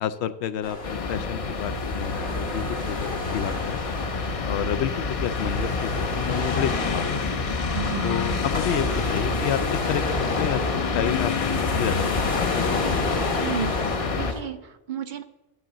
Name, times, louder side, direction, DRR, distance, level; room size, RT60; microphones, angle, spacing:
voice 1, 0.0-3.8 4.4-7.4 8.0-10.0 10.4-12.8, left 9 dB, 85° left, 13 dB, 0.8 m, -30 dB
sound 1, 0.6-14.4, left 2 dB, 70° left, 1.9 m, -32 dB
sound 2, 0.8-14.3, left 4 dB, 45° left, 0.5 m, -28 dB
sound 3, 2.1-9.4, right 4 dB, 85° right, 1.3 m, -43 dB
voice 2, 7.7-8.1 13.4-13.8 14.2-15.2, right 9 dB, 60° right, 10 dB, 0.6 m, -32 dB
11.5 x 3.8 x 7.3 m, 1.0 s
omnidirectional pair, 1.1 m